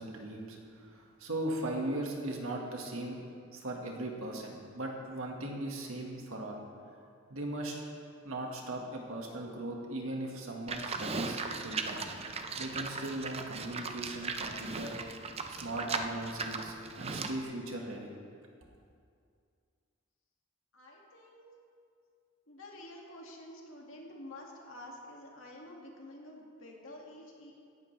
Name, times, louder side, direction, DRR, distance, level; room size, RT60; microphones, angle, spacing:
voice 1, 0.0-3.2 3.5-6.6 7.3-7.8 8.2-12.0 12.6-15.0 15.6-18.1, right 1 dB, 85° right, 0 dB, 1.8 m, -38 dB
Livestock farm animals working animals, 10.7-17.4, right 4 dB, 30° right, 0.6 m, -38 dB
voice 2, 20.7-21.5 22.5-27.5, left 1 dB, 70° left, -1 dB, 2.2 m, -49 dB
17.0 x 11.5 x 3.4 m, 2.3 s
head